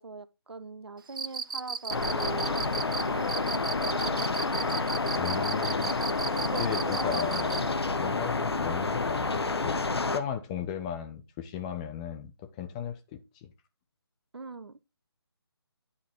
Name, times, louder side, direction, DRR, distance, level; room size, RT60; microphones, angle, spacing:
voice 1, 0.0-4.2 6.3-7.2 7.6-7.8 14.3-14.8, right 4 dB, 75° right, 1.1 m, -42 dB
Cricket, 1.1-7.7, right 5 dB, 55° right, 0.6 m, -34 dB
sound 1, 1.9-10.2, left 3 dB, 70° left, 1.4 m, -29 dB
voice 2, 5.2-6.0 6.6-7.6 8.0-9.8 10.1-12.3 12.6-13.0 13.4-13.5, left 8 dB, 15° left, 0.9 m, -35 dB
10.5 x 5.6 x 4.7 m
figure-of-eight pair, 150°, 14 cm